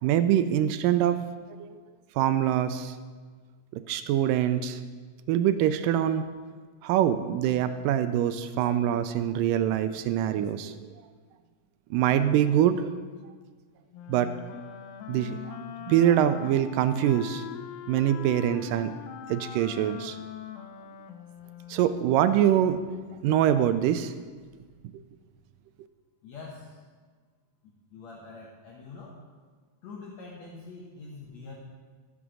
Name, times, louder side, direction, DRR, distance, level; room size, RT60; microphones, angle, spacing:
voice 1, 0.0-1.2 1.6-1.8 2.2-3.0 3.7-4.8 5.3-6.3 6.8-10.9 11.9-12.9 14.1-14.3 15.1-15.6 15.9-17.5 17.9-18.9 19.3-20.2 21.7-22.8 23.2-24.1, right 10 dB, 80° right, 11 dB, 2.1 m, -24 dB
Wind instrument woodwind instrument, 13.9-22.1, left 9 dB, 90° left, 2.4 m, -42 dB
voice 2, 26.2-26.8 27.9-29.2 29.8-31.6, left 4 dB, 60° left, -3 dB, 2.1 m, -44 dB
14.5 x 6.1 x 6.2 m, 1.5 s
omnidirectional pair, 3.9 m